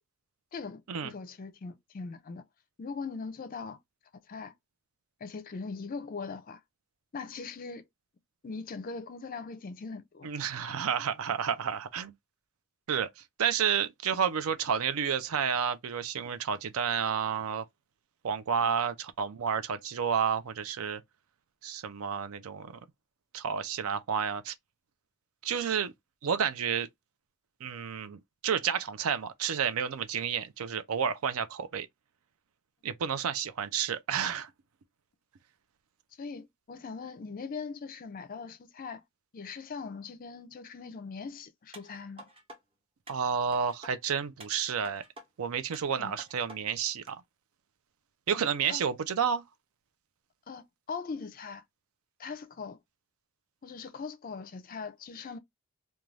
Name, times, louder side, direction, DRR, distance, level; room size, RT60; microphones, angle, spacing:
voice 1, 0.5-2.4 2.8-3.8 4.3-4.5 5.2-6.6 7.1-7.8 8.4-10.3 18.6-18.7 36.2-39.0 39.3-42.3 46.0-46.1 48.3-48.4 48.7-48.8 50.5-51.6 52.2-52.8 53.6-55.4, left 4 dB, 40° left, 0.4 m, -40 dB
voice 2, 10.2-12.1 12.9-17.7 18.2-21.0 21.6-22.8 23.3-24.5 25.4-25.9 26.2-26.9 27.6-31.9 32.8-34.5 43.1-45.0 45.4-47.2 48.3-49.4, right 7 dB, 75° right, 0.5 m, -30 dB
sound 1, 41.7-42.6 43.1-43.9 44.4-45.3 45.7-46.6 47.1-47.2, right 2 dB, 25° right, 0.8 m, -49 dB
2.5 x 2.2 x 3.1 m
head